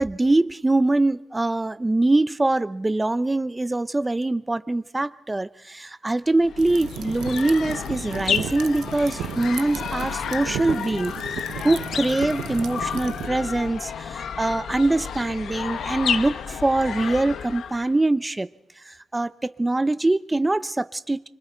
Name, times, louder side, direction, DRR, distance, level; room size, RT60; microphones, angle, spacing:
voice 1, 0.0-11.1 11.6-18.5 18.9-21.3, right 2 dB, 15° right, 14 dB, 0.7 m, -23 dB
sound 1, 6.4-17.9, left 7 dB, 60° left, 1.0 m, -31 dB
sound 2, 6.6-13.3, right 10 dB, 80° right, 0.7 m, -35 dB
26.0 x 24.5 x 4.5 m, 0.77 s
cardioid pair, 130°, 0 cm